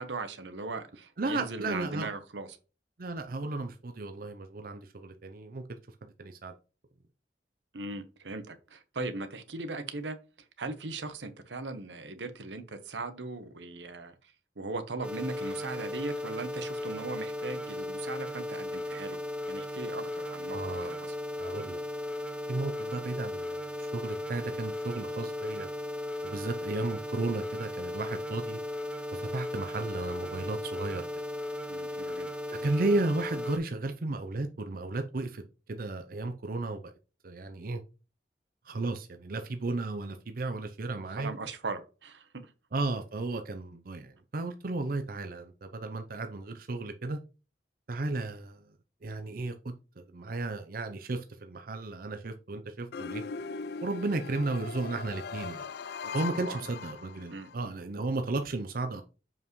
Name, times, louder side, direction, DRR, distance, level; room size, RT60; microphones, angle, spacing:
voice 1, 0.0-2.6 7.7-10.2 10.6-19.2 19.5-21.1 31.7-32.3 40.9-42.5 56.0-56.6 57.3-57.5, right 3 dB, 90° right, 1.0 m, -39 dB
voice 2, 1.2-2.1 3.0-5.6 6.2-6.5 20.5-20.9 21.4-21.8 22.5-25.7 26.2-28.6 29.1-31.0 32.5-35.4 35.7-36.8 37.2-37.8 38.6-41.3 42.7-47.2 47.9-48.6 49.0-53.2 53.8-55.6 56.1-59.0, right 2 dB, 55° right, 0.6 m, -34 dB
sound 1, 15.0-33.6, left 1 dB, 5° right, 0.8 m, -36 dB
sound 2, 52.9-57.5, left 5 dB, 60° left, 0.3 m, -40 dB
7.3 x 5.3 x 3.1 m
head